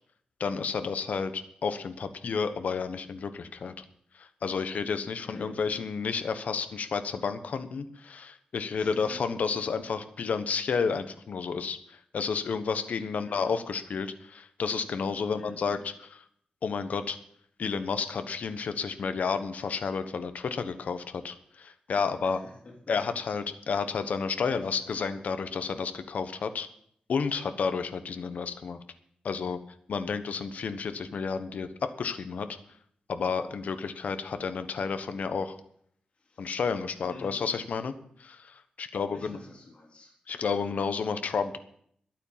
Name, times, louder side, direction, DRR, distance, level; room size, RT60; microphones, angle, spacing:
voice 1, 0.4-3.8 4.1-15.9 16.6-17.2 17.6-22.4 22.9-26.7 27.1-28.8 29.2-29.6 29.9-32.5 33.1-35.5 36.4-37.9 38.2-39.4 40.3-41.6, left 5 dB, 70° left, 10 dB, 1.1 m, -31 dB
voice 2, 5.2-6.1 8.7-9.3 13.3-13.6 15.4-15.9 22.2-23.0 24.6-24.8 36.2-36.6 37.1-37.5 39.1-40.1, left 3 dB, 45° left, 0 dB, 3.8 m, -48 dB
12.0 x 9.0 x 7.4 m, 0.66 s
wide cardioid pair, 130°, 3 cm